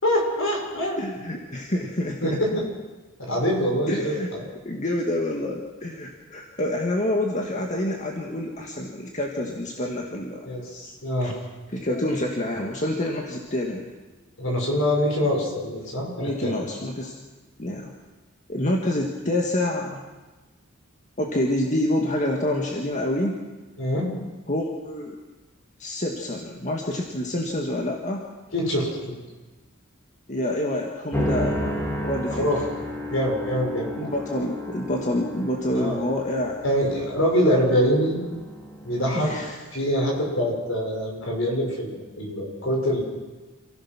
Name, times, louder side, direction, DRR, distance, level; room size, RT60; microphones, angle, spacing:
voice 1, 0.0-1.0 2.2-2.6 3.2-4.4 10.4-11.3 14.4-16.6 23.8-24.1 28.5-29.1 32.3-32.6 33.1-33.9 35.7-36.0 36.6-38.2 38.8-39.3 39.7-43.0, equal, 65° left, -1 dB, 6.3 m, -24 dB
voice 2, 1.0-2.4 3.9-4.4 4.6-10.5 11.2-11.3 11.7-13.9 16.2-17.1 17.6-17.9 18.5-20.0 21.2-23.4 24.5-25.1 25.8-28.2 30.3-32.5 34.0-36.6 39.1-39.6, left 1 dB, 35° left, 1 dB, 1.9 m, -27 dB
sound 1, 31.1-39.5, equal, 10° left, 3.0 m, -33 dB
28.0 x 16.0 x 6.2 m, 1.2 s
head